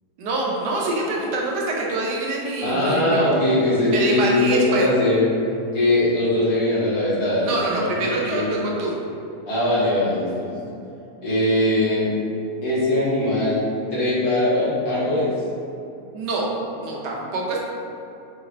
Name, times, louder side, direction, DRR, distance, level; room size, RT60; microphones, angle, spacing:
voice 1, 0.2-3.2 3.9-4.9 7.4-9.0 16.1-17.6, right 2 dB, 85° right, -2 dB, 1.3 m, -25 dB
voice 2, 2.6-5.3 5.7-8.5 9.5-10.6 11.2-12.1 12.6-13.6 13.9-15.3, left 1 dB, 70° left, -11 dB, 1.9 m, -21 dB
4.8 x 2.5 x 2.9 m, 2.7 s
omnidirectional pair, 1.7 m